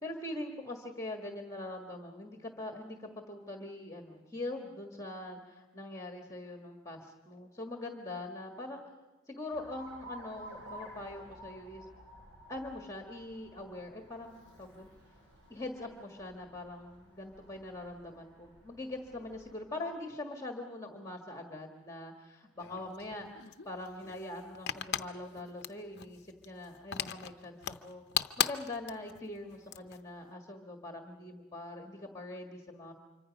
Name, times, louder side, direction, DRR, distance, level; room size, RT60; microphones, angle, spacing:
voice 1, 0.0-8.8 9.3-11.9 12.5-14.9 15.5-28.0 28.4-32.9, left 2 dB, 15° left, 3 dB, 1.6 m, -43 dB
Alarm, 9.5-19.6, equal, 60° right, 6.4 m, -53 dB
sound 1, 22.6-30.0, left 9 dB, 50° left, 0.8 m, -38 dB
26.5 x 24.5 x 5.3 m, 1.2 s
head